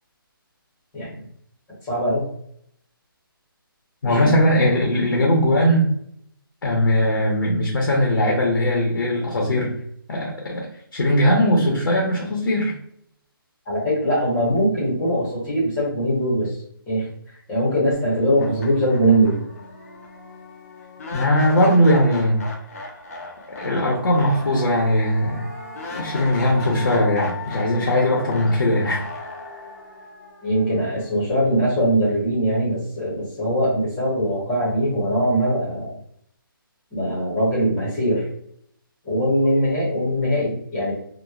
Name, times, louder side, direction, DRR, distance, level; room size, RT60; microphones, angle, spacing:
voice 1, 1.8-2.3 4.0-4.3 13.7-16.6 16.9-17.1 17.5-19.4 30.4-35.9 36.9-38.3 39.0-40.9, right 1 dB, 10° left, -7 dB, 0.8 m, -21 dB
voice 2, 4.0-5.9 6.6-9.7 10.1-10.7 10.9-12.7 21.1-22.4 23.6-25.5 25.9-29.0, equal, 75° left, -2 dB, 0.7 m, -19 dB
sound 1, 17.9-18.0 18.4-31.4, left 3 dB, 40° left, 0.5 m, -37 dB
2.9 x 2.1 x 2.3 m, 0.68 s
hypercardioid pair, 170°, 12 cm